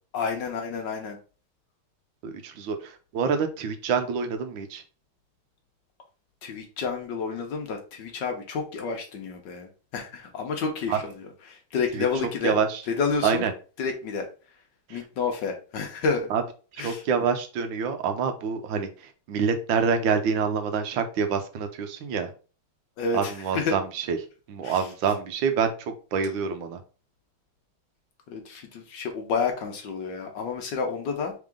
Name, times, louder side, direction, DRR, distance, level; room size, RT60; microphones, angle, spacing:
voice 1, 0.1-1.2 6.4-12.6 12.9-13.5 13.8-14.2 14.9-16.3 16.8-17.0 23.0-23.7 24.6-24.9 28.3-31.3, left 5 dB, 65° left, 4 dB, 1.3 m, -30 dB
voice 2, 2.2-4.8 10.9-11.0 11.9-12.0 12.4-12.8 13.2-13.5 14.9-15.0 16.3-16.4 16.8-18.9 19.3-22.3 23.1-24.2 24.5-26.8, right 6 dB, 75° right, 7 dB, 1.4 m, -26 dB
3.7 x 3.6 x 3.5 m, 0.36 s
omnidirectional pair, 2.2 m